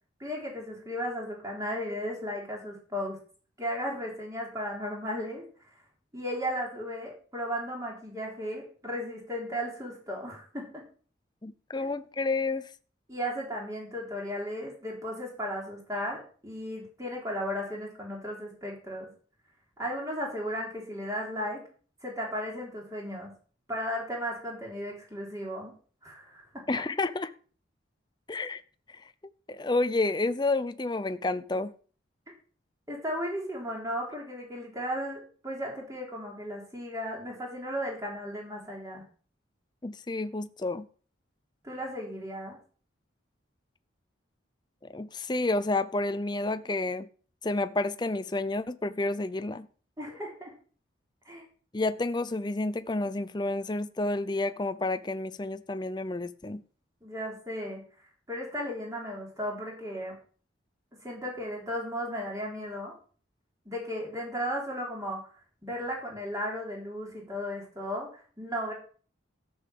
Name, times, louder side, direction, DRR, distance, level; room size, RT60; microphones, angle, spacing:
voice 1, 0.2-3.2 3.6-5.4 6.1-10.7 13.1-19.1 19.8-21.6 22.0-23.3 23.7-25.7 26.0-26.8 32.9-39.0 41.6-42.6 50.0-50.5 51.3-51.5 57.0-57.8 58.3-60.2 61.0-62.9 63.7-65.3 65.6-68.7, equal, 15° right, -2 dB, 3.6 m, -35 dB
voice 2, 11.4-12.7 26.7-27.3 28.3-28.6 28.9-29.0 29.5-31.7 39.8-40.9 44.8-47.1 47.4-49.7 51.7-56.6, left 2 dB, 20° left, 12 dB, 0.5 m, -30 dB
13.5 x 5.6 x 7.6 m, 0.42 s
head